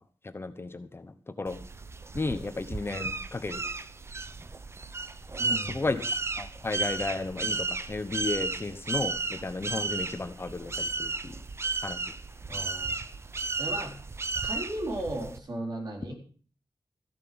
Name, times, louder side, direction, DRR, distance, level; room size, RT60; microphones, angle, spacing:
voice 1, 0.2-1.6 2.1-3.6 5.7-6.0 6.4-11.4 11.8-12.0, left 3 dB, 30° left, 10 dB, 1.0 m, -33 dB
lost maples baby eagle, 1.5-15.4, right 3 dB, 35° right, 0.7 m, -34 dB
voice 2, 5.4-5.9 12.5-13.0 13.6-14.0 14.4-16.1, right 1 dB, 55° right, 2 dB, 4.2 m, -35 dB
14.5 x 7.5 x 7.8 m, 0.42 s
wide cardioid pair, 145°, 8 cm